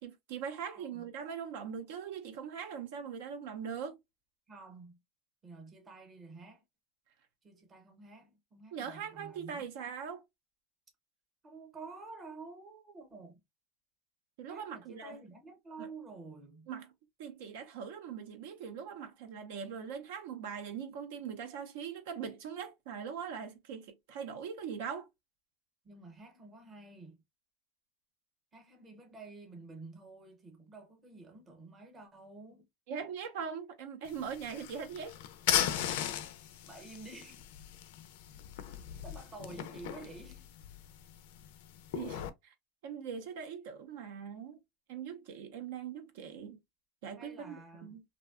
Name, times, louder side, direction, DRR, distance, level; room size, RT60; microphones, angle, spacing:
voice 1, 0.0-4.0 8.7-10.2 14.4-15.2 15.8-15.9 16.7-16.9 17.2-25.1 32.9-35.2 41.9-42.5 42.8-44.6 44.9-46.6 47.0-48.0, right 7 dB, 75° right, 0.5 m, -41 dB
voice 2, 0.8-1.1 4.5-5.0 5.4-6.6 7.4-9.7 11.4-13.4 14.5-16.7 25.8-27.2 28.5-32.7 36.7-37.4 39.0-40.5 47.2-48.0, right 3 dB, 20° right, 0.8 m, -50 dB
sound 1, 34.1-42.3, left 10 dB, 75° left, 0.3 m, -37 dB
2.6 x 2.1 x 2.3 m
supercardioid pair, 150°, 0 cm